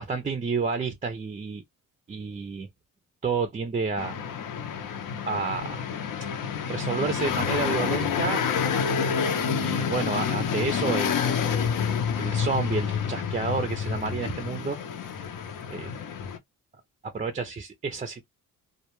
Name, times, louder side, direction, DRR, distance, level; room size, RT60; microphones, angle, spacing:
voice 1, 0.0-1.6 2.1-2.7 3.2-4.2 5.2-5.8 6.7-8.4 8.8-11.4 12.2-14.8 15.7-15.9 17.0-18.2, right 4 dB, 20° right, 0.4 m, -30 dB
sound 1, 4.0-16.4, left 7 dB, 65° left, 0.7 m, -28 dB
2.2 x 2.2 x 2.9 m
cardioid pair, 125°, 34 cm